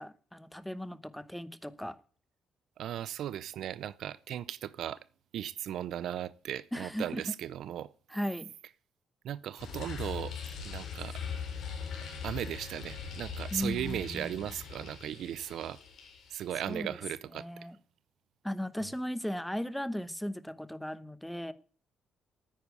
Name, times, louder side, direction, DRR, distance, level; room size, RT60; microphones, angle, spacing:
voice 1, 0.0-2.0 6.7-7.2 8.1-8.5 13.5-14.4 16.7-17.0 17.3-17.8 18.4-21.5, equal, 5° left, 0.9 m, -37 dB
voice 2, 2.8-5.0 5.3-7.9 9.2-10.4 10.6-11.2 12.0-15.8 16.3-17.5, right 11 dB, 75° right, 0.5 m, -37 dB
sound 1, 9.6-16.7, left 6 dB, 75° left, 3.9 m, -41 dB
9.5 x 9.2 x 8.3 m
cardioid pair, 90°, 0 cm